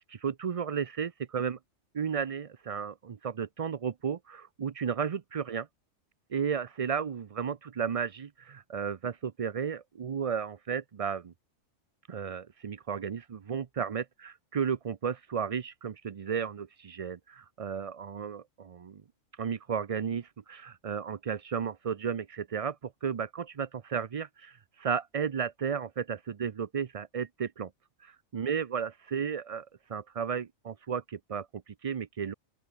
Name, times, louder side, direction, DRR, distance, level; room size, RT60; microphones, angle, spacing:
voice 1, 0.0-1.6 1.9-5.7 6.3-11.3 12.1-19.0 19.4-27.7 28.0-32.3, right 7 dB, 55° right, 0.4 m, -34 dB
open air
omnidirectional pair, 1.4 m